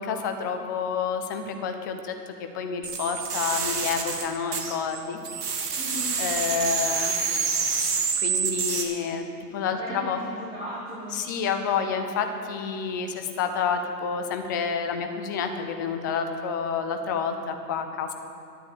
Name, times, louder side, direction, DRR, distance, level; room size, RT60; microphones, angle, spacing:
voice 1, 0.0-5.2 6.2-7.1 8.2-9.3 9.5-10.2 11.1-18.1, left 6 dB, 15° left, 6 dB, 0.4 m, -29 dB
sound 1, 2.8-5.0 5.2-8.8, right 5 dB, 65° right, 2.5 m, -27 dB
voice 2, 5.8-6.2 9.7-11.1, equal, 10° right, -13 dB, 4.5 m, -37 dB
12.5 x 10.5 x 8.3 m, 2.5 s
hypercardioid pair, 125°, 49 cm